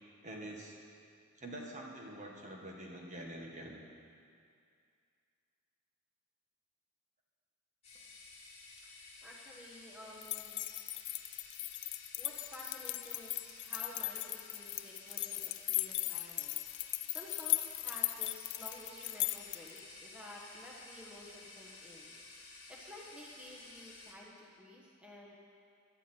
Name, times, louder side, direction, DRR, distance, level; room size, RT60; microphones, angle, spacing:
voice 1, 0.2-0.8 1.4-3.8, right 1 dB, 35° right, -1 dB, 1.7 m, -46 dB
sound 1, 7.8-24.1, left 3 dB, 30° left, 2.3 m, -54 dB
voice 2, 9.2-10.6 12.2-22.2 22.7-25.4, left 1 dB, 5° right, -4 dB, 1.3 m, -52 dB
sound 2, 10.2-19.8, left 18 dB, 55° left, 0.4 m, -38 dB
16.5 x 12.0 x 4.5 m, 2.4 s
head